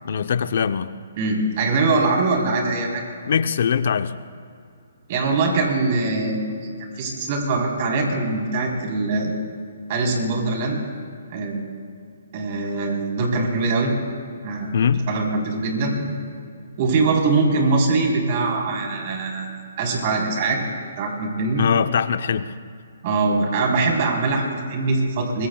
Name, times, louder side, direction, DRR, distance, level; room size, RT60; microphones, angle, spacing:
voice 1, 0.0-0.9 3.2-4.1 14.7-15.0 21.6-22.5, left 7 dB, 60° left, 11 dB, 0.8 m, -21 dB
voice 2, 1.2-3.0 5.1-6.5 6.8-9.4 9.9-10.8 11.3-11.6 12.3-13.9 14.4-16.1 16.8-19.5 19.8-20.6 21.0-21.6 23.0-25.5, right 3 dB, 40° right, 0 dB, 4.0 m, -22 dB
24.5 x 22.5 x 2.4 m, 2.3 s
hypercardioid pair, 145°, 0 cm